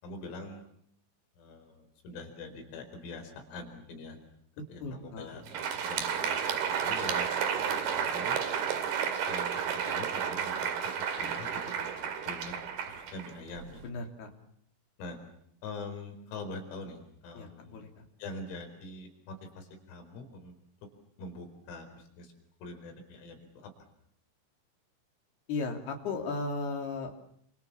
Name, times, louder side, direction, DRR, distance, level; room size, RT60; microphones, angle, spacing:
voice 1, 0.0-0.6 1.4-4.2 4.7-5.4 5.8-8.4 9.3-9.5 9.9-13.8 15.0-15.2 15.6-17.8 18.2-20.5 21.2-22.3 22.6-23.7, left 2 dB, 80° left, 5 dB, 7.2 m, -44 dB
voice 2, 4.8-5.3 13.8-14.3 17.3-18.0 25.5-27.3, left 3 dB, 55° left, 3 dB, 4.9 m, -36 dB
Crowd, 5.3-13.8, right 7 dB, 55° right, 3.8 m, -32 dB
29.0 x 27.5 x 7.2 m, 0.69 s
omnidirectional pair, 6.0 m